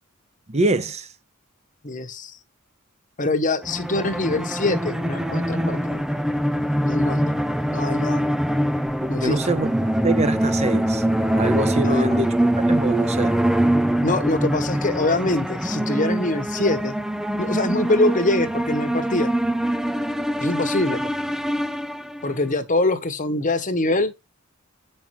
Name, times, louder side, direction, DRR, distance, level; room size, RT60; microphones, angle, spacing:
voice 1, 0.5-1.1 9.0-11.0 11.3-13.4 20.9-21.0, right 2 dB, 30° right, 1.0 m, -25 dB
voice 2, 1.8-2.4 3.2-6.0 6.8-7.4 7.7-8.2 9.1-9.4 11.8-12.2 14.0-17.0 17.4-19.3 20.4-21.1 22.2-24.1, left 2 dB, 40° left, 1.3 m, -24 dB
sound 1, 3.6-22.4, right 1 dB, 5° right, 0.5 m, -23 dB
8.6 x 5.6 x 4.7 m
head